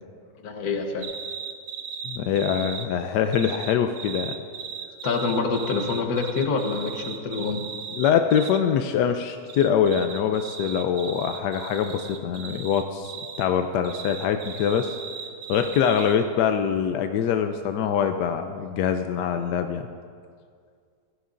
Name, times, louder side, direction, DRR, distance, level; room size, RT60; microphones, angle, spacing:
voice 1, 0.4-1.1 5.0-7.6, left 4 dB, 70° left, 4 dB, 1.5 m, -26 dB
sound 1, 1.0-2.9 3.3-8.6 9.5-13.5 13.8-16.2, right 6 dB, 75° right, 1.4 m, -37 dB
voice 2, 2.0-4.3 7.9-15.0 15.5-19.9, left 8 dB, 90° left, 7 dB, 1.2 m, -24 dB
16.0 x 14.5 x 2.5 m, 2.1 s
omnidirectional pair, 1.7 m